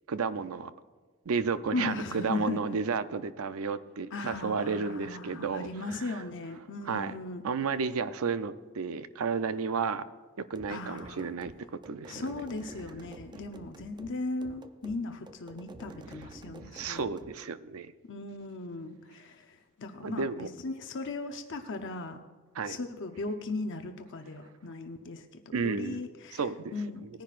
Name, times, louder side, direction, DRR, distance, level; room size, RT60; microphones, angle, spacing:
voice 1, 0.1-0.7 1.3-5.7 6.0-6.1 6.9-7.1 7.4-10.0 10.4-12.4 16.7-17.9 20.0-20.5 22.6-22.8 25.5-26.0 26.3-27.1, right 5 dB, 70° right, 13 dB, 0.5 m, -32 dB
voice 2, 1.7-2.8 4.1-7.4 10.7-11.3 12.1-17.1 18.0-22.2 22.7-26.5 26.7-27.2, left 3 dB, 60° left, 6 dB, 0.7 m, -37 dB
sound 1, 10.5-17.4, right 2 dB, 20° right, 0.4 m, -50 dB
19.5 x 10.5 x 2.5 m, 1.4 s
head